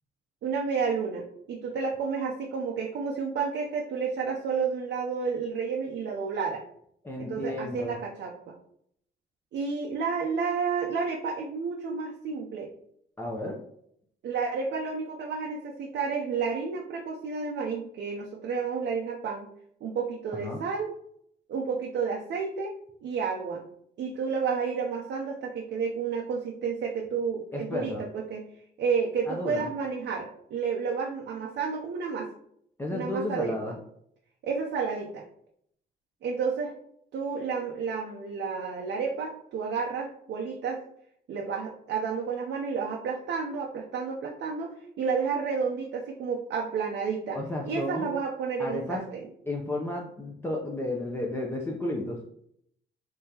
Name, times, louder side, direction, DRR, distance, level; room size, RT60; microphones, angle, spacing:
voice 1, 0.4-6.6 7.2-8.5 9.5-12.7 14.2-19.5 19.8-20.9 21.5-22.7 23.0-23.7 24.0-27.9 28.3-28.4 28.8-32.3 32.9-33.6 34.4-35.2 36.2-36.7 37.1-40.8 41.3-47.4 47.6-49.2, right 5 dB, 65° right, -1 dB, 0.6 m, -31 dB
voice 2, 7.0-8.0 13.2-13.6 20.3-20.6 27.5-28.0 29.3-29.7 32.8-33.7 47.3-48.1 48.6-49.0 49.5-52.2, left 1 dB, 10° left, -2 dB, 0.6 m, -32 dB
3.6 x 3.3 x 2.8 m, 0.70 s
cardioid pair, 90°, 20 cm